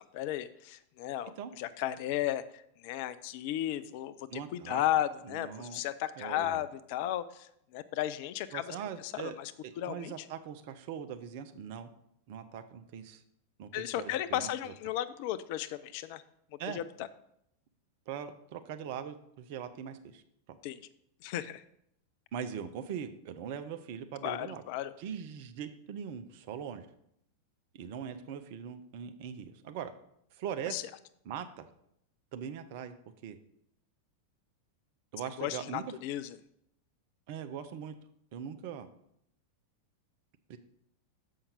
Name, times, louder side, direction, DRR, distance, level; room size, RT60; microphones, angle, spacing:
voice 1, 0.0-2.4 2.8-4.1 4.5-8.7 9.0-9.5 9.8-10.1 13.7-16.2 16.7-16.8 20.6-20.8 21.2-21.6 24.2-24.9 30.7-30.8 35.4-36.4, left 12 dB, 45° left, 13 dB, 0.4 m, -34 dB
voice 2, 4.3-4.8 5.2-5.8 6.2-6.6 8.5-11.9 12.3-13.2 13.6-14.7 16.6-16.8 18.1-20.2 20.5-20.6 22.3-24.6 25.0-26.9 27.7-29.9 30.3-30.8 31.2-31.7 32.3-32.9 33.2-33.4 35.1-35.8 37.3-37.9 38.3-38.9 40.5-40.6, right 8 dB, 50° right, 9 dB, 0.6 m, -41 dB
7.0 x 5.5 x 5.1 m, 0.73 s
figure-of-eight pair, 90°, 0 cm